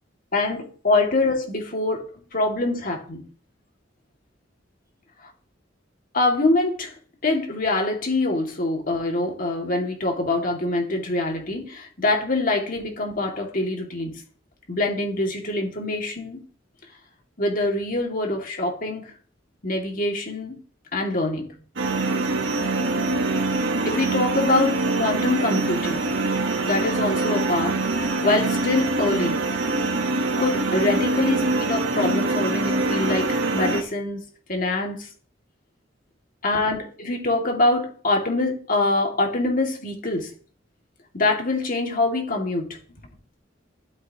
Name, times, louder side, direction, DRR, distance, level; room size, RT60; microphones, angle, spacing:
voice 1, 0.3-2.0 2.3-3.2 6.1-6.9 7.2-14.2 14.7-16.4 17.4-19.1 19.6-20.6 20.9-21.5 23.8-26.1 26.6-29.4 30.4-34.2 34.5-35.1 36.4-40.3 41.1-42.7, left 2 dB, 45° left, 1 dB, 2.4 m, -24 dB
sound 1, 21.8-33.8, right 2 dB, 80° right, 1.3 m, -24 dB
12.5 x 7.7 x 3.0 m, 0.42 s
head